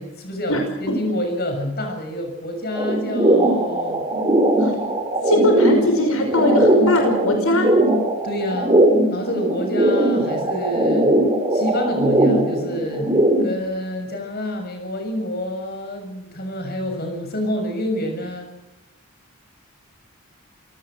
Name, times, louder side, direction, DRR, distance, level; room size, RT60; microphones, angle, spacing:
voice 1, 0.0-4.0 8.2-8.7 9.1-11.1 11.5-13.1 13.4-18.5, left 1 dB, 45° left, 4 dB, 6.6 m, -27 dB
sound 1, 2.8-13.6, right 1 dB, 20° right, 5.6 m, -19 dB
voice 2, 5.2-7.7, left 1 dB, 70° left, 4 dB, 5.6 m, -20 dB
27.0 x 18.5 x 6.4 m, 0.97 s
head